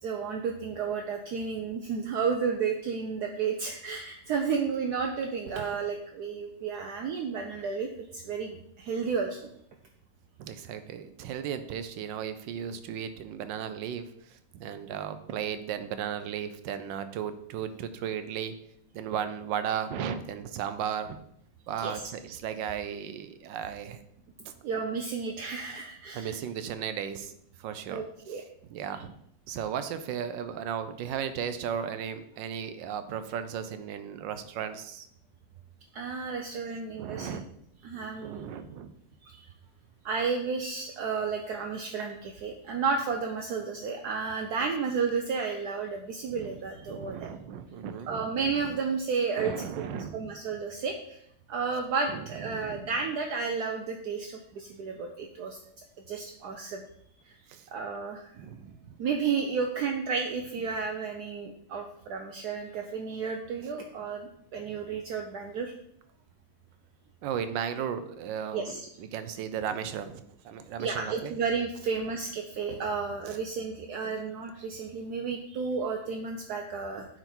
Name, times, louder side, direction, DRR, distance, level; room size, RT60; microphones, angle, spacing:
voice 1, 0.0-9.5 21.8-22.0 24.6-26.4 27.9-28.4 35.9-37.4 37.8-38.5 39.2-39.5 40.0-47.3 48.1-51.2 51.5-55.6 56.1-56.8 57.2-57.4 57.7-58.3 59.0-65.7 68.5-68.9 70.8-77.2, right 5 dB, 70° right, 3 dB, 1.1 m, -32 dB
voice 2, 10.4-18.5 18.9-21.2 21.7-24.0 26.1-27.3 27.6-28.0 28.7-29.1 29.5-35.1 37.0-37.4 38.2-38.9 46.4-48.2 49.4-50.3 52.1-52.2 52.5-52.9 57.5-57.6 58.3-59.0 64.6-64.7 67.2-71.3 73.3-73.4, right 8 dB, 85° right, 10 dB, 1.3 m, -35 dB
9.0 x 4.0 x 4.3 m, 0.72 s
omnidirectional pair, 2.0 m